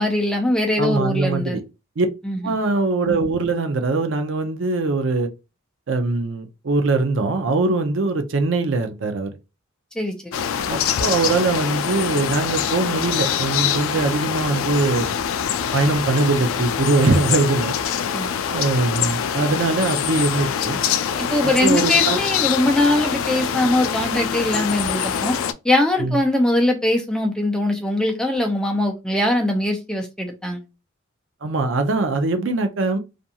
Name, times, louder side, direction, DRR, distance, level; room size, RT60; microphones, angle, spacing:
voice 1, 0.0-1.6 2.3-2.4 10.0-10.3 18.1-18.3 21.2-25.3 25.6-30.6, left 1 dB, 5° left, 0.5 m, -21 dB
voice 2, 0.8-1.6 2.0-2.1 2.4-5.3 5.9-9.3 10.7-15.2 15.7-17.7 18.5-20.8 21.4-22.2 26.0-26.2 31.4-33.0, right 3 dB, 65° right, 0.5 m, -22 dB
sound 1, 10.3-25.5, left 8 dB, 80° left, 0.3 m, -24 dB
2.5 x 2.3 x 2.7 m
head